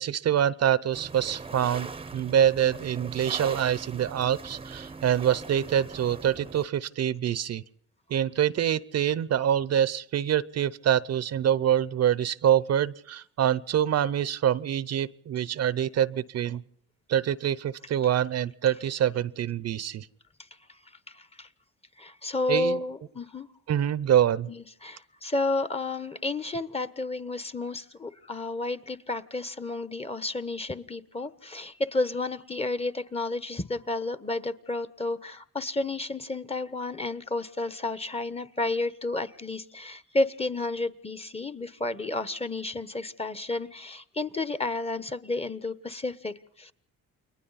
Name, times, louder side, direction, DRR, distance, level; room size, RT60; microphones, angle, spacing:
voice 1, 0.0-7.6 8.1-16.6 17.1-20.1 22.5-22.8 23.7-24.5, right 10 dB, 55° right, 18 dB, 0.8 m, -25 dB
sound 1, 0.9-6.7, right 4 dB, 20° right, 0.8 m, -41 dB
voice 2, 21.1-21.5 22.0-23.5 24.5-46.7, left 2 dB, 20° left, 13 dB, 1.2 m, -31 dB
29.5 x 22.0 x 4.2 m, 0.69 s
cardioid pair, 90°, 30 cm